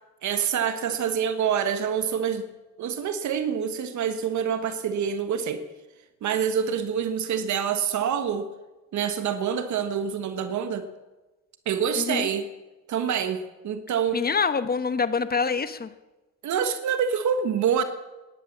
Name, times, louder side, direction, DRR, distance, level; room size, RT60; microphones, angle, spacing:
voice 1, 0.2-2.4 2.8-5.6 6.2-8.5 8.9-10.9 11.6-12.5 12.9-14.2 16.4-17.8, right 7 dB, 70° right, 9 dB, 1.4 m, -26 dB
voice 2, 12.0-12.3 14.1-15.9, left 5 dB, 30° left, 13 dB, 1.1 m, -25 dB
18.0 x 11.0 x 7.3 m, 1.1 s
cardioid pair, 90°, 30 cm